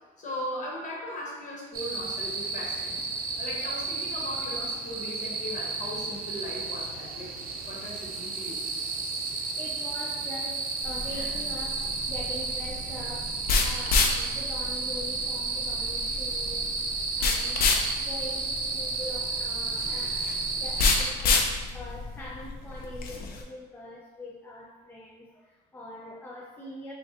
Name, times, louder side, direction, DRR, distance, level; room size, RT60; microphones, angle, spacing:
voice 1, 0.2-7.3 7.6-8.6, left 1 dB, 50° left, -4 dB, 1.3 m, -38 dB
sound 1, 1.7-21.1, right 4 dB, 60° right, 0.6 m, -32 dB
voice 2, 9.3-16.7 17.1-17.7 18.0-26.9, left 1 dB, 10° left, -3 dB, 0.4 m, -43 dB
sound 2, 10.8-23.4, left 4 dB, 65° left, 0.5 m, -29 dB
5.5 x 2.3 x 2.8 m, 1.3 s
cardioid pair, 110°, 17 cm